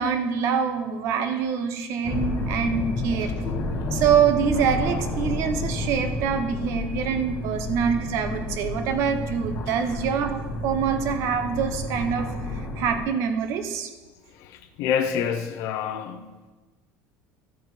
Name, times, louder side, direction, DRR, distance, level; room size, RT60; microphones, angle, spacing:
voice 1, 0.0-3.3 3.9-13.9, right 7 dB, 50° right, 8 dB, 0.8 m, -25 dB
sound 1, 2.0-13.0, left 2 dB, 30° left, 1.7 m, -30 dB
voice 2, 14.4-16.2, left 7 dB, 55° left, 5 dB, 0.7 m, -27 dB
13.5 x 4.6 x 5.0 m, 1.2 s
cardioid pair, 165°, 6 cm